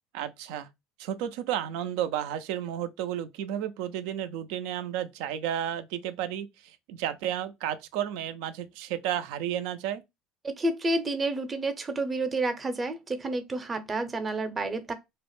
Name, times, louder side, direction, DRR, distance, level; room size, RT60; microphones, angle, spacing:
voice 1, 0.1-0.7 1.0-10.0, right 10 dB, 75° right, 0.3 m, -32 dB
voice 2, 10.6-14.9, right 2 dB, 25° right, 0.6 m, -30 dB
2.4 x 2.1 x 3.1 m
hypercardioid pair, 80°, 0 cm